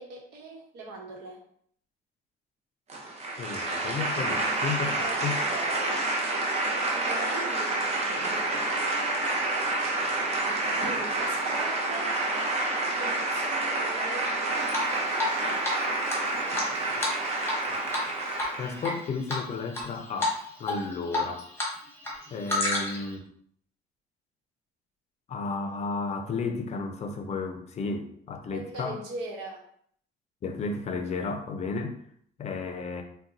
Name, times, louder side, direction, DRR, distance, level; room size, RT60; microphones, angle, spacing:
voice 1, 0.0-1.4 5.0-6.0 6.9-9.3 10.7-12.2 12.9-14.8 16.6-16.8 20.7-20.8 28.5-29.7, right 2 dB, 90° right, -1 dB, 1.0 m, -41 dB
sound 1, 2.9-18.9, right 2 dB, 40° right, 0.7 m, -28 dB
voice 2, 3.4-5.4 18.6-21.4 22.3-23.3 25.3-29.0 30.4-32.0 32.4-33.0, left 4 dB, 40° left, 6 dB, 0.5 m, -33 dB
Drip, 14.7-15.4 15.6-15.7 16.1-17.6 17.9-18.1 18.4-18.9 19.3-19.8 20.2-20.4 20.7-21.7 22.0-23.1, left 2 dB, 15° left, 1.0 m, -29 dB
3.8 x 2.2 x 2.6 m, 0.62 s
cardioid pair, 110°, 17 cm